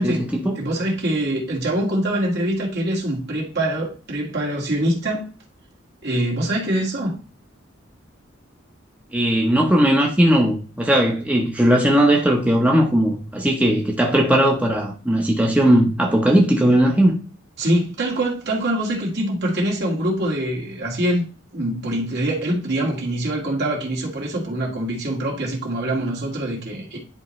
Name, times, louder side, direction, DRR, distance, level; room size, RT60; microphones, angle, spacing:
voice 1, 0.0-0.6 9.1-17.1, right 1 dB, 5° right, 0.9 m, -18 dB
voice 2, 0.6-5.3 6.0-7.2 17.6-21.2 21.5-27.0, right 1 dB, 60° right, 2.2 m, -24 dB
10.5 x 4.3 x 3.2 m
head